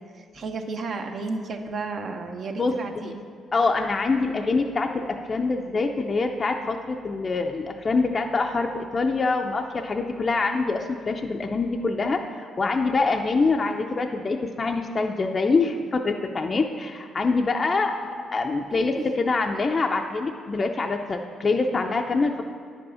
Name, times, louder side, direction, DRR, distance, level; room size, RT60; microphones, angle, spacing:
voice 1, 0.0-3.2 18.8-19.1, right 3 dB, 55° right, 5 dB, 0.8 m, -33 dB
voice 2, 3.5-18.0 18.3-22.4, left 3 dB, 35° left, 3 dB, 0.4 m, -25 dB
9.3 x 5.3 x 5.6 m, 2.1 s
cardioid pair, 90°, 0 cm